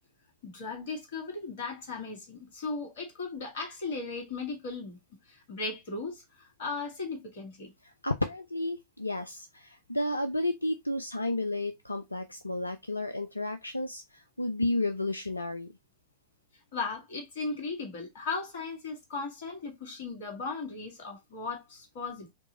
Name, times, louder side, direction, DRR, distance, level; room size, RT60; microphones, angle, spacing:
voice 1, 0.4-5.0 5.3-7.7 16.7-22.3, left 4 dB, 55° left, 2.0 m, -37 dB
voice 2, 7.8-15.7, left 2 dB, 85° left, 0.4 m, -32 dB
4.4 x 3.0 x 4.0 m
figure-of-eight pair, 90°, 0 cm